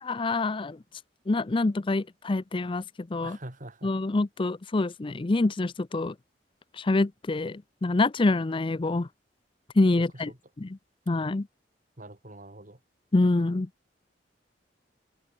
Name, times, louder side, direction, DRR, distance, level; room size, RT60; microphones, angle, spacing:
voice 1, 0.0-0.8 1.3-3.4 3.8-6.2 6.7-9.1 9.8-10.3 10.6-10.7 11.1-11.5 13.1-13.7, left 2 dB, 30° left, 0.5 m, -26 dB
voice 2, 3.2-3.9 10.0-10.4 12.0-12.8, right 1 dB, 50° right, 4.0 m, -44 dB
head